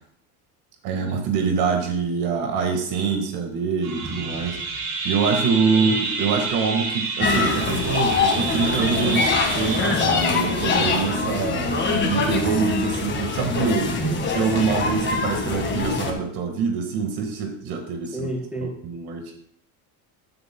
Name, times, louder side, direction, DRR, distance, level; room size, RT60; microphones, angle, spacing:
voice 1, 0.8-4.6 5.0-13.9 14.3-18.3 18.8-19.3, right 5 dB, 70° right, 4 dB, 1.7 m, -25 dB
sound 1, 3.8-13.5, right 4 dB, 90° right, 4.1 m, -30 dB
sound 2, 7.2-16.1, left 4 dB, 25° left, 1.7 m, -24 dB
voice 2, 13.8-14.2 18.1-18.7, right 2 dB, 5° right, -4 dB, 3.7 m, -29 dB
13.5 x 9.5 x 2.2 m, 0.66 s
cardioid pair, 130°, 40 cm